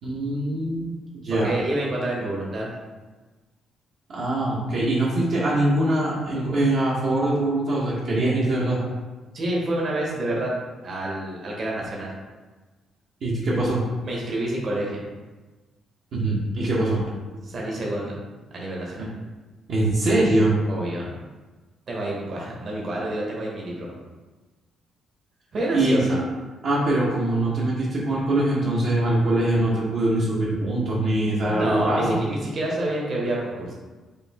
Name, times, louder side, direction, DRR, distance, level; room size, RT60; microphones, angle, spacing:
voice 1, 0.0-0.9 1.2-1.5 4.1-8.8 13.2-13.8 16.1-17.0 19.0-19.1 19.7-20.5 25.7-26.0 26.6-32.2, right 1 dB, 70° right, -7 dB, 1.0 m, -23 dB
voice 2, 1.3-2.7 9.3-10.5 10.8-12.1 14.0-15.0 17.4-18.2 18.5-19.1 20.7-21.1 21.9-23.9 25.5-26.1 31.4-33.7, right 1 dB, 55° right, -3 dB, 1.2 m, -28 dB
5.0 x 2.6 x 3.5 m, 1.3 s
cardioid pair, 90°, 0 cm